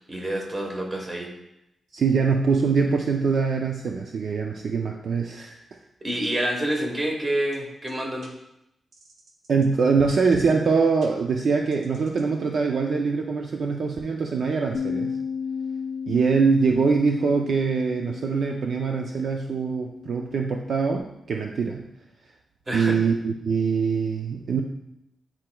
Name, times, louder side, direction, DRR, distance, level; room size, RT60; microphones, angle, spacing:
voice 1, 0.1-1.3 6.0-8.3 22.7-23.0, right 1 dB, 25° right, 0 dB, 1.1 m, -28 dB
voice 2, 1.9-5.6 9.5-15.1 16.1-21.8 22.7-24.6, right 5 dB, 55° right, 2 dB, 0.4 m, -23 dB
sound 1, 7.5-7.6 7.9-8.0 8.2-8.3 8.9-9.7 10.0-10.5 11.0-11.1 11.7-12.2, right 5 dB, 90° right, 0.9 m, -43 dB
Bass guitar, 14.7-21.0, left 6 dB, 75° left, 0.4 m, -34 dB
9.6 x 4.4 x 2.2 m, 0.85 s
wide cardioid pair, 175°, 0 cm